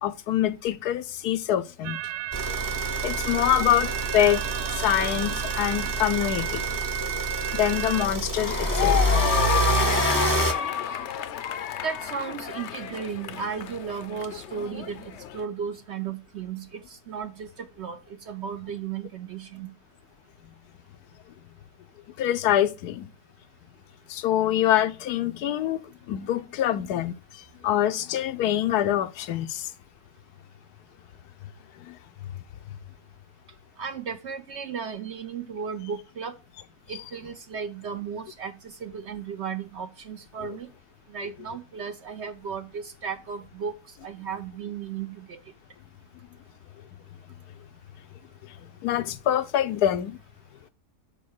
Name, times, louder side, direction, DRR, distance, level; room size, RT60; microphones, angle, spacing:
voice 1, 0.0-2.0 3.0-4.4 4.8-6.6 7.5-9.0 22.2-23.1 24.1-25.8 26.1-27.1 27.6-29.6 31.9-32.0 48.8-50.1, left 11 dB, 90° left, 1.2 m, -25 dB
sound 1, 1.8-8.1, right 14 dB, 90° right, 1.1 m, -33 dB
sound 2, 2.3-10.5, right 2 dB, 20° right, 0.6 m, -27 dB
sound 3, 8.4-15.4, left 10 dB, 60° left, 0.7 m, -29 dB
voice 2, 11.8-19.7 33.8-36.4 36.9-40.7 41.1-43.7 44.0-45.4, right 6 dB, 65° right, 0.7 m, -35 dB
5.5 x 4.6 x 6.3 m
omnidirectional pair, 1.6 m